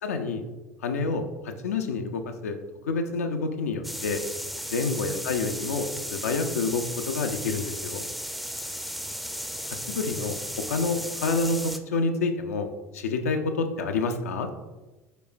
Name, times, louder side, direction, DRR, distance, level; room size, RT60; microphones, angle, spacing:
voice 1, 0.0-0.4 0.8-2.6 2.9-4.2 4.7-8.0 9.7-12.7 12.9-14.5, left 3 dB, 80° left, 6 dB, 0.4 m, -28 dB
sound 1, 3.8-11.8, equal, ahead, 0.4 m, -35 dB
5.0 x 4.2 x 2.5 m, 1.2 s
figure-of-eight pair, 70°, 8 cm